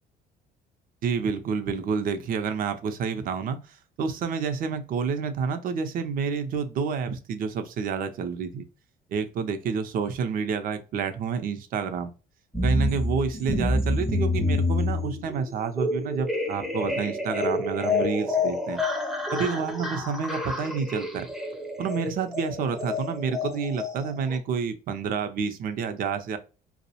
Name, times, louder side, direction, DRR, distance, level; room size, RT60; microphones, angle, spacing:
voice 1, 1.0-8.6 9.1-12.1 12.6-18.8 19.3-21.3 21.8-26.4, right 6 dB, 55° right, 9 dB, 0.5 m, -29 dB
sound 1, 12.5-24.4, left 2 dB, ahead, 0.5 m, -28 dB
2.3 x 2.0 x 2.7 m, 0.33 s
cardioid pair, 110°, 17 cm